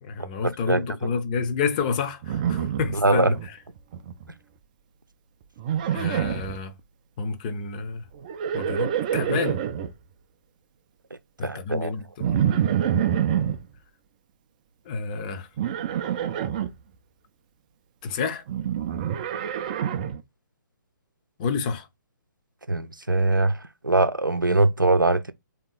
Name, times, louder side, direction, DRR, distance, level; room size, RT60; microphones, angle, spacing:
voice 1, 0.0-3.4 5.9-6.7 7.2-8.0 8.5-9.6 11.4-12.6 14.9-15.5 18.0-18.4 21.4-21.9, left 5 dB, 25° left, 0.6 m, -29 dB
voice 2, 0.7-1.1 2.9-3.4 11.4-11.9 22.7-23.6 23.8-25.3, right 2 dB, 85° right, 0.6 m, -22 dB
Livestock farm animals working animals, 2.2-3.5 3.8-4.3 5.6-6.6 8.2-9.9 12.2-13.6 15.6-16.7 18.5-20.2, right 9 dB, 25° right, 0.4 m, -26 dB
3.6 x 2.9 x 3.9 m
figure-of-eight pair, 135°, 11 cm